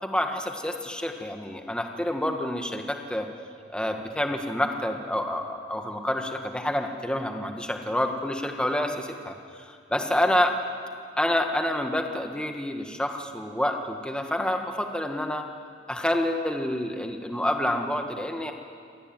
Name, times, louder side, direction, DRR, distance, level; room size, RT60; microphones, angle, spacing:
voice 1, 0.0-3.3 3.7-10.5 11.2-15.4 15.9-18.5, left 1 dB, 5° left, 3 dB, 1.7 m, -28 dB
27.0 x 18.5 x 9.3 m, 2.2 s
head